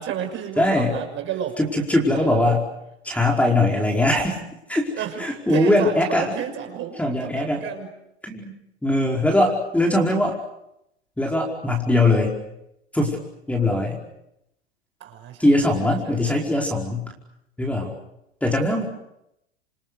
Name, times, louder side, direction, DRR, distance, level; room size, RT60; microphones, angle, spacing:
voice 1, 0.0-1.6 2.1-2.6 5.0-7.9 15.0-15.5 16.0-16.4, right 9 dB, 35° right, 6 dB, 6.2 m, -32 dB
voice 2, 0.6-0.9 1.6-2.6 3.0-4.4 4.7-4.9 5.2-6.3 7.0-7.6 8.2-8.5 8.8-10.4 11.2-12.4 12.9-13.2 13.5-14.0 15.4-17.1 17.6-17.9 18.4-18.8, left 1 dB, 5° left, 0 dB, 4.9 m, -21 dB
28.0 x 27.5 x 6.6 m, 0.82 s
hypercardioid pair, 115°, 33 cm